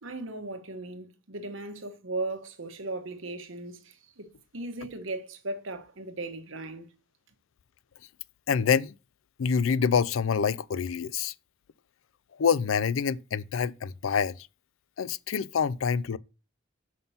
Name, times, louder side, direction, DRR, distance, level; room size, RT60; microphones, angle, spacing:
voice 1, 0.0-6.9, right 2 dB, 70° right, 1.2 m, -37 dB
voice 2, 8.5-8.9 9.4-11.3 12.4-14.3 15.0-16.2, left 6 dB, 75° left, 0.4 m, -26 dB
5.7 x 5.6 x 5.6 m
head